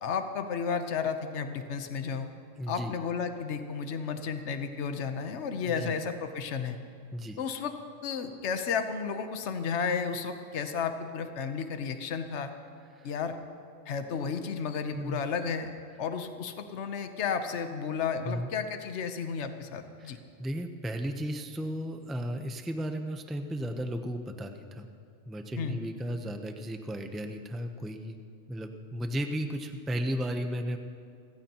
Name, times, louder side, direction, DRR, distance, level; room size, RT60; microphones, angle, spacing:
voice 1, 0.0-2.3 2.7-6.8 7.4-7.7 8.0-12.5 13.0-13.4 13.9-15.7 16.0-20.2 25.6-25.8, left 6 dB, 65° left, 7 dB, 1.2 m, -33 dB
voice 2, 2.6-2.9 5.7-6.0 7.1-7.4 12.9-13.1 15.0-15.2 18.2-18.5 20.0-24.9 25.3-28.2 28.5-30.8, equal, ahead, 5 dB, 0.5 m, -35 dB
29.5 x 15.0 x 3.0 m, 2.5 s
omnidirectional pair, 1.3 m